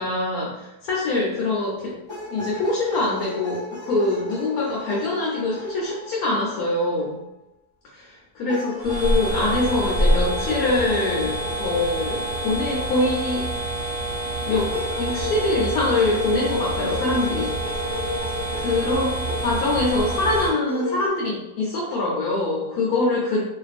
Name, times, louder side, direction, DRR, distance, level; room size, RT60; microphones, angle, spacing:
voice 1, 0.0-2.0 2.3-7.2 7.9-13.5 14.4-17.5 18.5-23.4, left 2 dB, 70° left, -4 dB, 1.0 m, -24 dB
sound 1, 2.1-7.2 8.5-14.0 14.7-19.6 20.3-21.1, left 3 dB, 30° left, 0.5 m, -35 dB
sound 2, 8.8-20.5, right 1 dB, 20° right, 0.7 m, -27 dB
2.5 x 2.4 x 2.4 m, 0.91 s
omnidirectional pair, 1.8 m